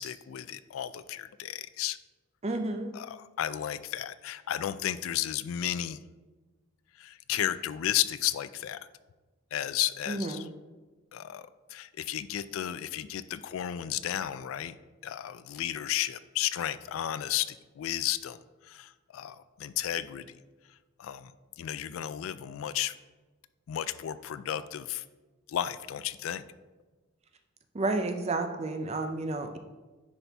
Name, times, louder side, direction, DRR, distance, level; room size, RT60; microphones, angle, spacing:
voice 1, 0.0-2.0 2.9-6.0 7.0-8.8 9.5-10.5 11.1-14.8 15.0-18.4 18.6-20.4 21.0-21.3 21.6-22.9 23.7-25.0 25.5-26.4, left 11 dB, 75° left, 14 dB, 0.3 m, -33 dB
voice 2, 2.4-2.9 10.1-10.5 27.7-29.6, right 2 dB, 30° right, 6 dB, 0.4 m, -31 dB
9.9 x 4.1 x 3.4 m, 1.2 s
head